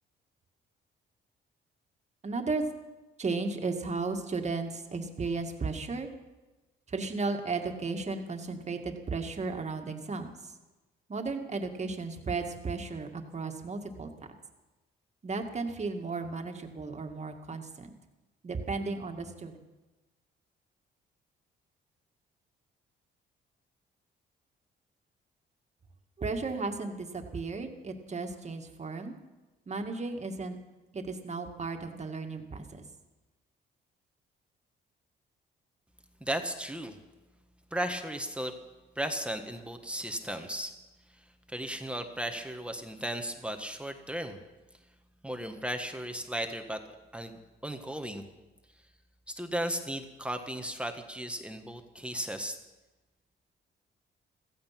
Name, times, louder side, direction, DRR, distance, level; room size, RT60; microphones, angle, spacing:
voice 1, 2.2-2.7 3.2-6.1 6.9-10.5 11.1-14.1 15.2-17.9 18.4-19.5 26.2-29.1 29.7-30.6 30.9-32.8, right 3 dB, 35° right, 4 dB, 2.0 m, -34 dB
voice 2, 36.2-37.0 37.7-38.5 38.9-40.7 41.5-44.4 45.2-46.8 47.1-47.4 47.6-48.2 49.3-52.6, right 1 dB, 5° right, 5 dB, 1.4 m, -35 dB
15.5 x 15.0 x 5.9 m, 1.1 s
cardioid pair, 90°, 20 cm